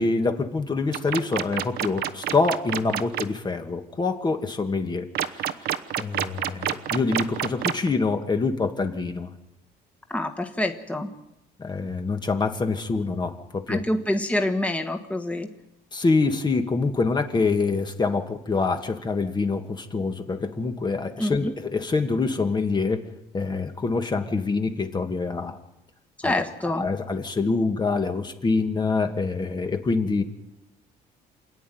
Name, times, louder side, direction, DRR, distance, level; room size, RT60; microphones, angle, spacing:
voice 1, 0.0-5.5 6.0-9.3 11.6-13.8 15.9-23.0 23.3-25.6 26.2-26.3 26.8-30.2, left 4 dB, 25° left, 6 dB, 1.7 m, -25 dB
sound 1, 0.9-3.2 5.1-7.9, right 11 dB, 70° right, 1.1 m, -27 dB
voice 2, 10.1-11.1 13.7-15.5 21.2-21.5 26.2-26.8, left 1 dB, 10° left, 5 dB, 1.6 m, -26 dB
27.5 x 10.5 x 9.4 m, 0.88 s
cardioid pair, 110°, 17 cm